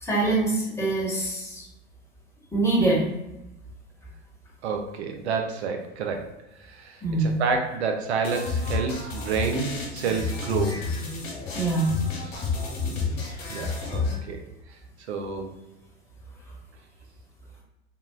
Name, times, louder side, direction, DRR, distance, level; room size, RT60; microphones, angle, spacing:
voice 1, 0.0-1.6 2.5-3.0 7.0-7.3 11.5-11.9, right 2 dB, 10° left, -4 dB, 0.9 m, -24 dB
voice 2, 4.6-10.8 12.2-12.5 12.9-13.2 13.5-14.4 15.1-15.5, right 5 dB, 75° right, 4 dB, 0.5 m, -29 dB
sound 1, 8.2-14.2, left 4 dB, 45° left, 1.2 m, -30 dB
3.7 x 2.1 x 2.2 m, 0.91 s
hypercardioid pair, 85°, 33 cm